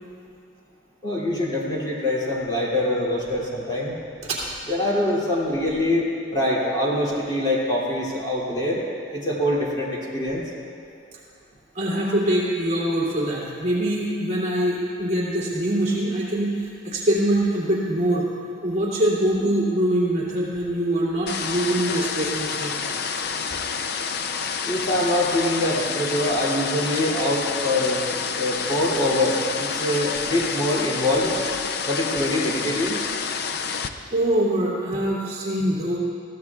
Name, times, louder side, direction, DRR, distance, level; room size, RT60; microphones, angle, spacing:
voice 1, 1.0-3.9 4.7-8.9 9.1-10.4 24.6-28.0 28.4-31.4 31.8-33.0, left 1 dB, 20° left, -6 dB, 2.6 m, -24 dB
voice 2, 11.7-18.2 18.6-22.8 34.1-36.0, right 1 dB, 35° right, -6 dB, 2.8 m, -23 dB
sound 1, 21.3-33.9, left 6 dB, 50° left, 0.5 m, -28 dB
21.5 x 16.0 x 2.4 m, 2.4 s
head